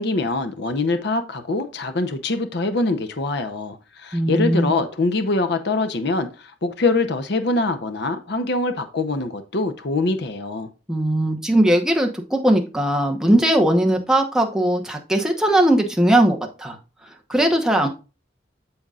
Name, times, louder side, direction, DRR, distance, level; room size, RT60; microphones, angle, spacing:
voice 1, 0.0-10.7, left 3 dB, 60° left, 0.8 m, -24 dB
voice 2, 4.1-4.7 10.9-16.8 17.3-17.9, right 1 dB, 5° right, 1.0 m, -19 dB
8.9 x 7.0 x 2.4 m
head